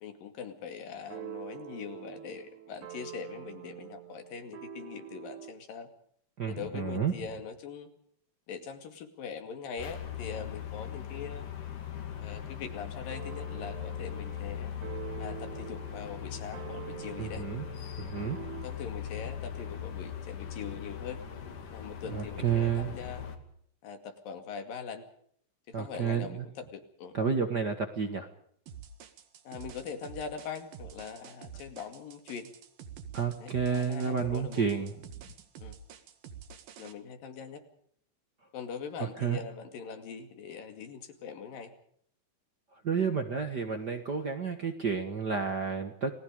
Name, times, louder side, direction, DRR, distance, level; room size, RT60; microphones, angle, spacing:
voice 1, 0.0-5.9 6.5-7.9 8.5-11.5 12.2-14.7 15.2-17.5 18.2-18.3 18.6-21.2 21.7-23.2 23.8-25.1 25.7-27.1 29.5-32.5 33.4-34.9 35.6-35.8 36.8-37.6 38.5-41.7, left 6 dB, 80° left, 7 dB, 4.1 m, -42 dB
sound 1, 0.9-5.6 13.1-18.7, right 12 dB, 65° right, 3.2 m, -46 dB
voice 2, 6.4-7.1 17.2-17.6 18.0-18.4 22.1-23.0 25.7-26.5 27.1-28.3 33.1-35.0 39.0-39.4 42.8-46.1, right 6 dB, 45° right, 6 dB, 1.5 m, -30 dB
sound 2, 9.8-23.4, left 9 dB, 65° left, 3.9 m, -40 dB
sound 3, 28.7-36.9, right 7 dB, 80° right, 3.5 m, -48 dB
29.5 x 20.0 x 5.3 m, 0.62 s
omnidirectional pair, 3.9 m